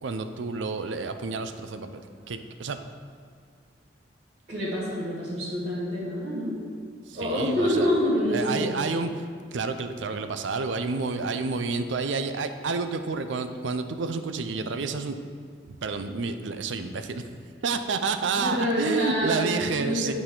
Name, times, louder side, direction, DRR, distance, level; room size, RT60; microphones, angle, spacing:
voice 1, 0.0-2.8 7.1-7.9 8.3-9.2 9.5-15.2 15.7-17.2 17.6-20.1, right 4 dB, 80° right, 9 dB, 0.5 m, -29 dB
voice 2, 4.5-6.6 7.1-8.8 18.3-19.4 19.7-20.1, equal, 40° right, -11 dB, 1.8 m, -27 dB
10.5 x 4.2 x 3.7 m, 2.2 s
head